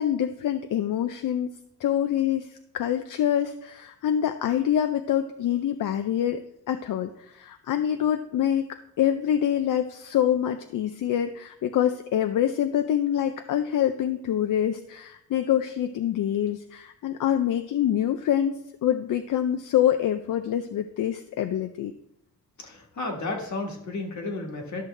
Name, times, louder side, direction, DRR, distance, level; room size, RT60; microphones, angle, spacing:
voice 1, 0.0-1.5 1.8-2.5 2.7-8.6 9.0-18.5 18.8-21.9, left 10 dB, 85° left, 8 dB, 0.5 m, -25 dB
voice 2, 22.6-24.8, left 2 dB, 65° left, 1 dB, 1.6 m, -32 dB
12.0 x 6.2 x 3.2 m, 0.79 s
wide cardioid pair, 115°, 31 cm